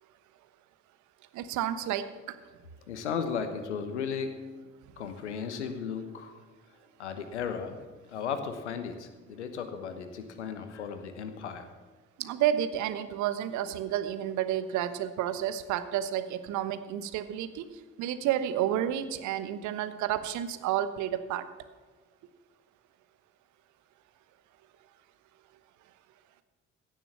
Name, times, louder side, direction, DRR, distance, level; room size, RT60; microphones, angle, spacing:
voice 1, 1.3-2.3 12.2-17.6 18.0-21.4, right 11 dB, 55° right, 11 dB, 1.1 m, -30 dB
voice 2, 2.9-4.3 5.0-6.4 7.0-7.8 8.1-11.7, left 6 dB, 80° left, 9 dB, 1.1 m, -35 dB
16.5 x 7.0 x 7.2 m, 1.4 s
figure-of-eight pair, 50°, 34 cm